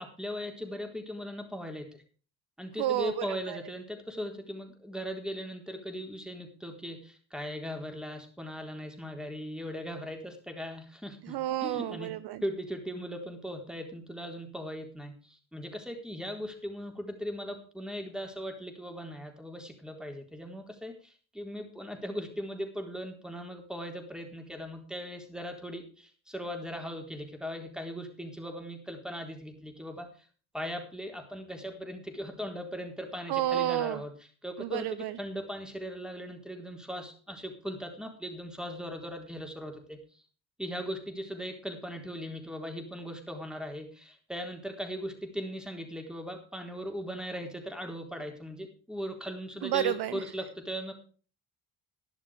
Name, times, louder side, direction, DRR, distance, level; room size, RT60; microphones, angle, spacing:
voice 1, 0.0-2.0 2.6-12.1 12.4-30.1 30.5-34.1 34.4-34.9 35.2-40.0 40.6-50.9, equal, ahead, 4 dB, 4.0 m, -39 dB
voice 2, 2.8-3.6 11.2-12.4 33.3-34.0 34.6-35.2 49.6-50.2, right 13 dB, 55° right, 15 dB, 0.7 m, -30 dB
12.0 x 11.0 x 5.1 m, 0.39 s
hypercardioid pair, 50°, 48 cm